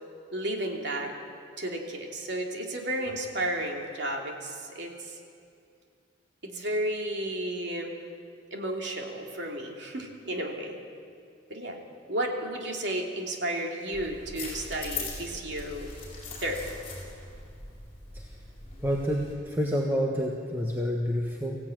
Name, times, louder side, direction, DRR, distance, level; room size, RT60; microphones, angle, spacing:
voice 1, 0.3-1.1 1.6-5.1 6.4-7.9 8.5-10.8 11.5-11.8 12.1-15.9 16.4-16.7, right 1 dB, 60° right, 1 dB, 3.0 m, -33 dB
sound 1, 13.9-19.3, left 3 dB, 30° left, 6.7 m, -41 dB
voice 2, 18.8-21.6, equal, 10° right, -1 dB, 1.4 m, -28 dB
23.5 x 16.0 x 9.2 m, 2.4 s
head